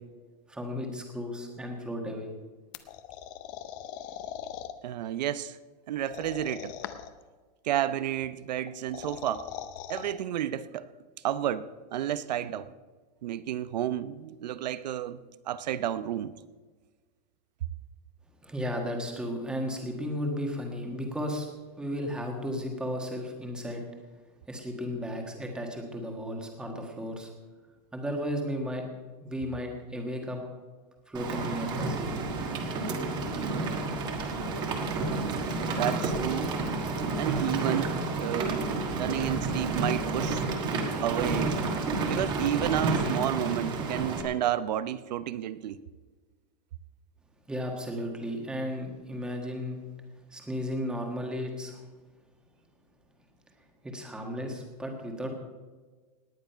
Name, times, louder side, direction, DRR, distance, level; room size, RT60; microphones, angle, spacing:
voice 1, 0.5-2.3 18.4-21.5 21.8-23.8 24.5-27.3 27.9-28.8 29.2-30.4 31.1-32.3 47.5-49.8 50.3-51.8 53.8-55.3, equal, 5° right, 1.5 m, -34 dB
sound 1, 2.7-4.7 6.0-7.2 8.7-10.1, left 10 dB, 30° left, 0.7 m, -40 dB
voice 2, 4.8-5.6 5.9-6.7 7.6-9.5 9.9-10.9 11.2-12.7 13.2-15.2 15.5-16.3 35.8-36.6 37.1-38.7 39.0-40.4 41.0-41.5 42.1-45.8, right 11 dB, 85° right, 0.8 m, -31 dB
Rain, 31.1-44.2, right 3 dB, 20° right, 1.4 m, -30 dB
18.5 x 9.7 x 5.7 m
supercardioid pair, 180°, 21 cm